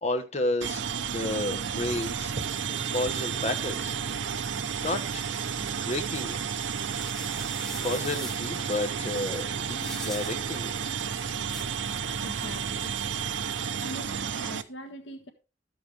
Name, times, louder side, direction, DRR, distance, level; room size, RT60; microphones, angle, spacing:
voice 1, 0.0-2.3 2.9-4.0 4.8-5.3 5.6-6.4 7.8-10.9, left 2 dB, 40° left, 1.3 m, -32 dB
sound 1, 0.6-14.6, right 7 dB, 80° right, 0.7 m, -32 dB
sound 2, 1.4-7.9, right 2 dB, 55° right, 1.0 m, -50 dB
sound 3, 6.8-8.4 9.8-10.3 11.5-11.7, equal, 5° left, 0.9 m, -42 dB
voice 2, 12.2-12.9 13.8-15.3, equal, 85° left, 1.4 m, -42 dB
13.0 x 7.5 x 3.4 m
head